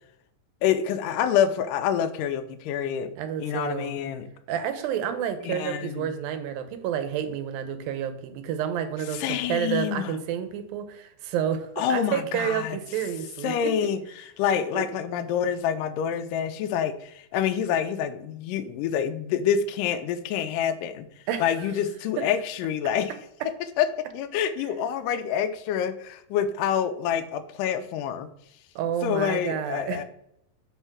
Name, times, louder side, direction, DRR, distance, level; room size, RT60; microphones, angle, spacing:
voice 1, 0.6-3.1 3.4-4.3 5.4-6.2 9.1-10.2 11.8-12.8 13.4-21.1 21.4-23.1 23.8-28.3 29.0-30.0, left 8 dB, 80° left, 11 dB, 2.1 m, -27 dB
voice 2, 3.2-4.0 4.5-13.9 14.7-14.8 21.3-21.7 28.8-30.0, right 9 dB, 90° right, 9 dB, 2.5 m, -30 dB
5.4 x 4.5 x 5.9 m, 0.75 s
omnidirectional pair, 4.0 m